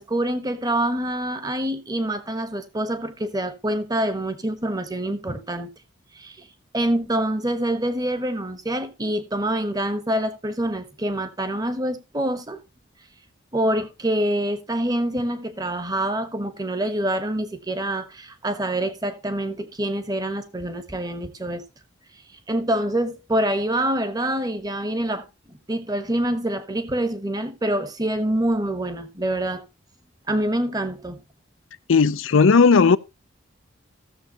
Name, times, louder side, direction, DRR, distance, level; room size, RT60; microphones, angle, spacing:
voice 1, 0.0-5.7 6.1-6.5 6.7-12.6 13.5-21.6 22.5-25.2 25.7-29.6 30.3-31.2, right 1 dB, 20° right, 1.1 m, -26 dB
voice 2, 31.9-33.0, left 5 dB, 75° left, 0.5 m, -15 dB
16.0 x 7.0 x 2.8 m
head